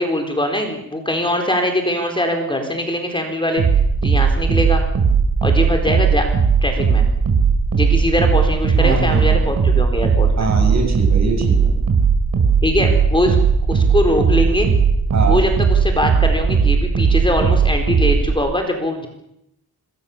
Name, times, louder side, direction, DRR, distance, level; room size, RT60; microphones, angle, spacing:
voice 1, 0.0-3.6 4.0-4.8 5.4-6.3 6.6-7.1 7.7-10.5 12.6-13.4 13.7-14.7 15.2-19.1, left 1 dB, 15° left, 4 dB, 4.1 m, -21 dB
sound 1, 3.6-18.3, right 5 dB, 65° right, 5.3 m, -17 dB
voice 2, 8.8-9.5 10.4-11.8 15.1-15.4, right 4 dB, 50° right, 3 dB, 7.7 m, -23 dB
27.0 x 21.5 x 7.2 m, 0.80 s
wide cardioid pair, 145°, 36 cm